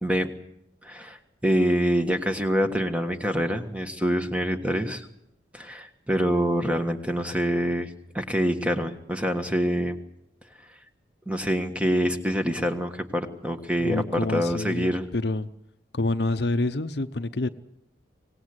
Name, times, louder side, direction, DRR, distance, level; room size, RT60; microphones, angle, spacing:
voice 1, 0.0-0.3 0.8-5.1 5.5-10.0 11.3-15.1, equal, 5° right, 6 dB, 1.5 m, -26 dB
voice 2, 13.8-15.5 15.9-17.5, left 2 dB, 60° left, 10 dB, 0.8 m, -27 dB
25.0 x 19.0 x 8.0 m, 0.80 s
head